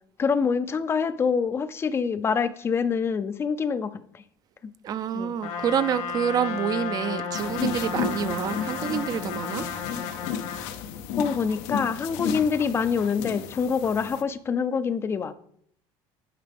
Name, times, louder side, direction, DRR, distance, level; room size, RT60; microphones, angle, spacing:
voice 1, 0.2-3.9 5.1-5.3 11.2-15.3, left 6 dB, 25° left, 14 dB, 0.4 m, -25 dB
voice 2, 4.8-9.7, right 8 dB, 35° right, 14 dB, 0.5 m, -27 dB
Trumpet, 5.4-10.7, left 6 dB, 70° left, 1.3 m, -33 dB
sound 1, 7.3-14.2, left 7 dB, 85° left, 0.7 m, -33 dB
9.4 x 5.7 x 3.5 m, 0.66 s
cardioid pair, 150°, 11 cm